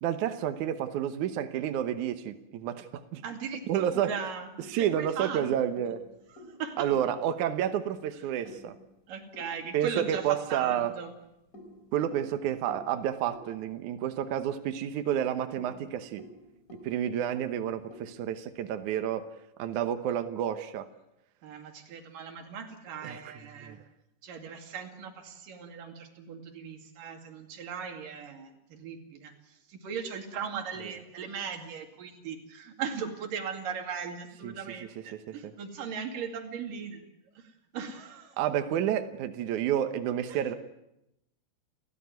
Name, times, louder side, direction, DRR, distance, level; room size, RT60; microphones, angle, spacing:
voice 1, 0.0-3.2 3.7-4.1 4.7-6.0 6.8-8.8 9.7-10.9 11.9-16.3 16.8-19.3 19.6-20.9 23.0-23.3 23.6-23.8 34.4-34.5 35.3-35.5 38.4-40.5, right 10 dB, 75° right, 8 dB, 1.8 m, -30 dB
voice 2, 3.2-5.5 6.4-6.9 9.1-11.1 21.4-23.8 24.2-29.3 29.7-37.0 37.4-37.5 37.7-38.3 40.3-40.4, right 6 dB, 55° right, 4 dB, 3.8 m, -38 dB
sound 1, 3.6-10.0 10.7-14.6 14.9-15.0 15.4-18.9, left 1 dB, 20° left, 4.8 m, -52 dB
29.5 x 14.0 x 9.4 m, 0.87 s
omnidirectional pair, 4.9 m